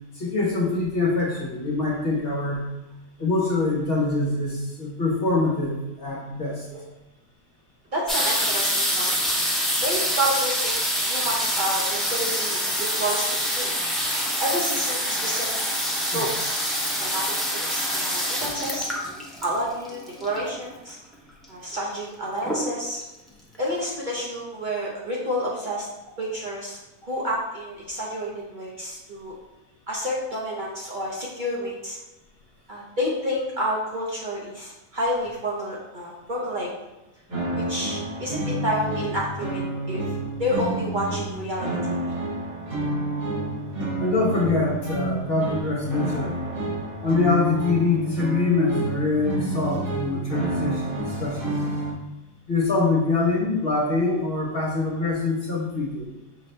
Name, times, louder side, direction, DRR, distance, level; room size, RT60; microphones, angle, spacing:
voice 1, 0.1-2.6 3.2-6.7 16.1-16.3 44.0-46.4 47.0-51.6 52.5-56.1, left 3 dB, 50° left, -2 dB, 0.9 m, -24 dB
voice 2, 7.9-9.2 9.8-13.3 13.5-13.7 14.4-15.6 16.1-16.6 17.0-18.9 19.4-21.0 21.5-23.0 23.6-25.9 26.2-26.8 27.1-29.3 29.9-32.0 32.7-36.7 37.5-39.6 39.9-40.0 40.4-42.2, equal, 45° right, -4 dB, 0.8 m, -29 dB
sound 1, 8.1-20.6 21.4-21.5 21.7-22.1 22.4-23.0 23.5-23.6 23.8-23.9, equal, ahead, 0.5 m, -26 dB
sound 2, 37.3-51.9, right 1 dB, 85° right, 2.1 m, -29 dB
5.6 x 2.8 x 3.2 m, 0.98 s
omnidirectional pair, 1.5 m